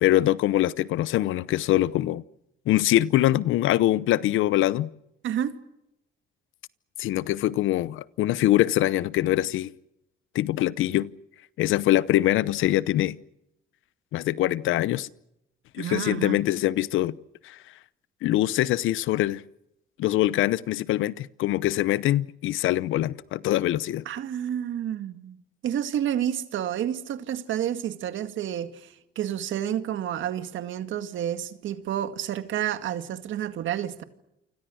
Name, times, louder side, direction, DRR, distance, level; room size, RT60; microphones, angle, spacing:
voice 1, 0.0-2.2 2.7-4.9 7.0-9.7 10.3-11.1 11.6-13.2 14.1-15.1 15.7-17.2 17.4-17.6 18.2-19.4 20.0-24.0, left 14 dB, 85° left, 0.8 m, -23 dB
voice 2, 15.8-16.4 24.1-25.4 25.6-34.0, right 10 dB, 75° right, 2.1 m, -30 dB
28.5 x 25.5 x 6.4 m
cardioid pair, 90°, 20 cm